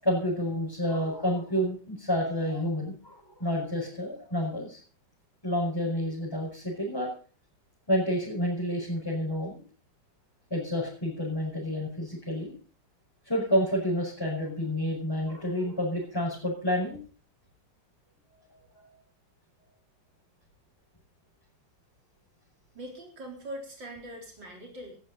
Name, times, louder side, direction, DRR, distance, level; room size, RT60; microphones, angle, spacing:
voice 1, 0.0-4.8 5.4-7.1 7.9-9.6 10.5-12.5 13.3-17.0 18.3-18.9, equal, 10° left, -5 dB, 5.4 m, -29 dB
voice 2, 22.7-25.0, right 1 dB, 80° right, 0 dB, 4.7 m, -42 dB
17.5 x 14.0 x 4.1 m, 0.40 s
omnidirectional pair, 1.9 m